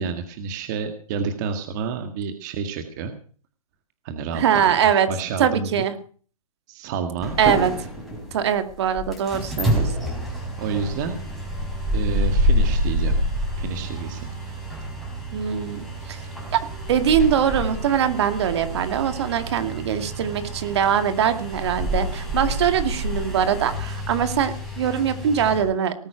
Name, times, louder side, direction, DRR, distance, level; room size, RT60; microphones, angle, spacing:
voice 1, 0.0-3.1 4.0-4.8 5.1-5.8 6.7-7.3 10.6-11.2 11.9-13.1 13.6-14.3, right 5 dB, 30° right, 7 dB, 1.8 m, -29 dB
voice 2, 4.3-5.1 5.4-5.9 7.4-7.7 8.3-9.9 15.3-16.2 16.5-16.6 16.9-25.9, right 8 dB, 50° right, 10 dB, 2.2 m, -22 dB
sound 1, 7.2-25.6, equal, ahead, 4.6 m, -27 dB
19.0 x 9.5 x 6.3 m, 0.43 s
hypercardioid pair, 165°, 18 cm